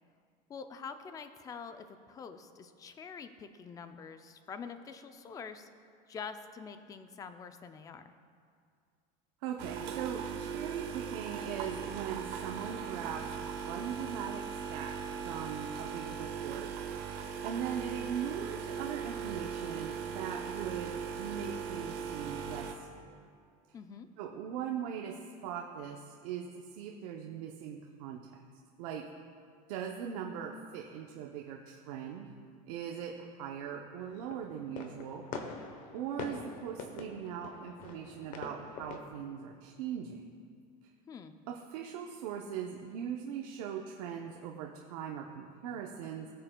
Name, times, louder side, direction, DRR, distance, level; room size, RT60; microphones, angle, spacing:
voice 1, 0.5-5.7 6.1-8.1 23.7-24.1 41.1-41.3, left 6 dB, 20° left, 9 dB, 0.4 m, -46 dB
voice 2, 9.4-14.4 14.7-15.0 15.2-16.7 17.4-23.1 24.2-25.2 25.4-28.4 28.8-29.1 29.7-32.3 32.7-35.2 35.9-40.2 41.5-46.3, right 8 dB, 80° right, 1 dB, 0.7 m, -40 dB
sound 1, 9.6-22.7, right 7 dB, 60° right, 1.0 m, -39 dB
sound 2, 34.0-39.0, left 5 dB, 45° left, 0.9 m, -44 dB
19.5 x 6.6 x 2.2 m, 2.2 s
cardioid pair, 160°, 19 cm